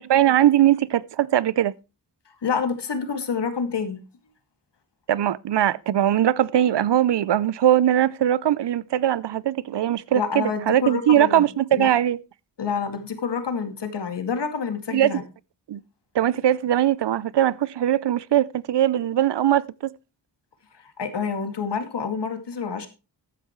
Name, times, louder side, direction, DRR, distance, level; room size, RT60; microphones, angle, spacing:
voice 1, 0.0-1.7 5.1-12.2 14.9-15.2 15.7-15.8 16.1-19.9, right 11 dB, 70° right, 0.6 m, -21 dB
voice 2, 2.4-4.0 10.1-11.4 11.8-11.9 12.6-15.2 20.8-22.9, left 6 dB, 70° left, 2.4 m, -28 dB
14.5 x 10.0 x 3.1 m
wide cardioid pair, 135°, 43 cm